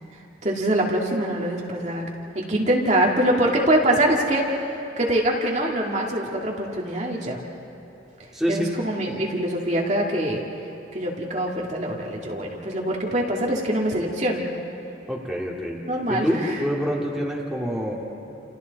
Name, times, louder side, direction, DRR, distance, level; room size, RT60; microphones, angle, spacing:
voice 1, 0.4-4.6 5.0-7.4 8.5-10.4 10.9-14.5 15.8-16.6, right 1 dB, 35° right, -2 dB, 2.2 m, -24 dB
voice 2, 8.3-8.7 15.1-15.8 16.1-17.9, equal, 5° right, -4 dB, 2.4 m, -26 dB
30.0 x 29.0 x 4.1 m, 2.9 s
head